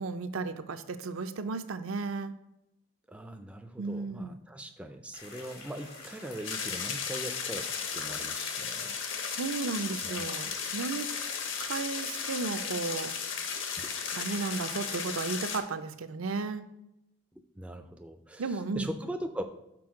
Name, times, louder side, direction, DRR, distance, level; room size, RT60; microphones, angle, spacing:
voice 1, 0.0-2.3 3.8-4.4 9.3-11.1 11.6-13.1 14.1-16.6 18.4-18.9, right 4 dB, 75° right, 10 dB, 0.5 m, -34 dB
voice 2, 3.1-7.7 7.9-8.9 10.0-10.6 17.6-19.4, right 1 dB, 5° right, 6 dB, 0.3 m, -41 dB
sound 1, 5.1-15.1, left 3 dB, 85° left, 2.2 m, -47 dB
sound 2, 6.4-15.6, left 6 dB, 60° left, 0.8 m, -35 dB
6.1 x 4.3 x 4.7 m, 0.90 s
head